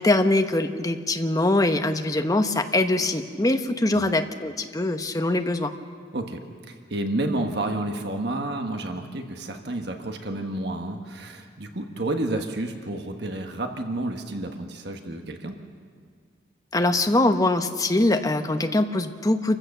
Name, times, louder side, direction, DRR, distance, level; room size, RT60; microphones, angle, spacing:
voice 1, 0.0-5.7 16.7-19.6, left 2 dB, 20° left, 7 dB, 0.9 m, -23 dB
voice 2, 6.7-15.5, right 1 dB, 60° right, 4 dB, 1.4 m, -30 dB
27.5 x 15.5 x 6.7 m, 2.1 s
head